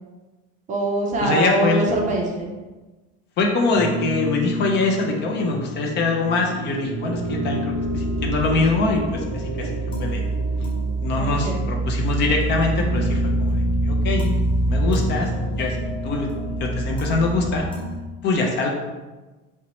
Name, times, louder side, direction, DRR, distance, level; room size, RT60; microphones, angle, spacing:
voice 1, 0.7-2.5 11.1-11.7, right 1 dB, 25° right, 0 dB, 0.5 m, -23 dB
voice 2, 1.2-1.9 3.4-9.7 10.0-10.2 11.0-14.3 14.6-15.3 15.6-15.8 16.0-16.3 16.6-17.6 18.2-18.7, left 3 dB, 35° left, 1 dB, 0.4 m, -23 dB
sound 1, 3.7-18.0, left 1 dB, 15° left, 0.9 m, -31 dB
sound 2, 5.0-13.3, right 5 dB, 90° right, 0.6 m, -37 dB
sound 3, 7.7-17.6, right 2 dB, 85° left, 0.9 m, -26 dB
4.3 x 2.9 x 3.0 m, 1.2 s
cardioid pair, 175°, 29 cm